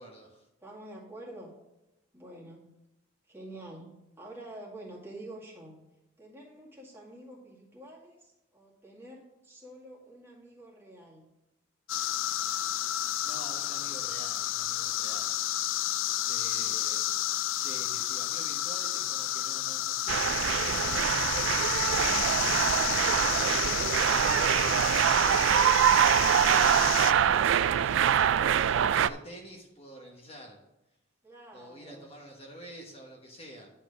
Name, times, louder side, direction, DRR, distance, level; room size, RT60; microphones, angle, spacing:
voice 1, 0.0-0.5 13.2-15.3 16.3-17.1 17.5-22.4 23.1-25.7 26.3-28.2 28.5-30.6 31.5-33.7, right 1 dB, 30° left, 0 dB, 1.3 m, -47 dB
voice 2, 0.6-1.5 2.1-2.7 3.2-5.8 6.2-11.2 16.5-16.8 31.2-32.1, right 1 dB, 10° right, -4 dB, 2.1 m, -47 dB
sound 1, 11.9-27.1, left 13 dB, 90° left, 0.3 m, -31 dB
sound 2, 20.1-29.1, right 9 dB, 80° right, 0.3 m, -24 dB
10.5 x 4.4 x 6.1 m, 0.94 s
head